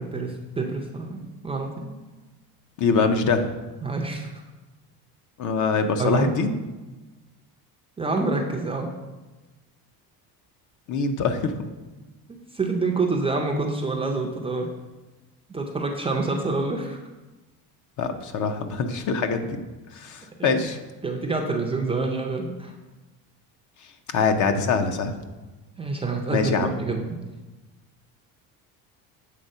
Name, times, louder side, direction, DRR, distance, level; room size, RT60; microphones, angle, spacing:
voice 1, 0.0-1.9 3.8-4.4 6.0-6.4 8.0-8.9 12.3-14.7 15.5-17.0 20.4-20.6 21.0-22.7 25.8-27.2, right 3 dB, 15° right, 1 dB, 0.4 m, -27 dB
voice 2, 2.8-3.5 5.4-6.5 10.9-11.5 18.0-19.6 19.9-20.8 24.1-25.1 26.3-26.7, left 4 dB, 45° left, 7 dB, 0.6 m, -24 dB
7.6 x 3.6 x 5.3 m, 1.2 s
cardioid pair, 140°, 42 cm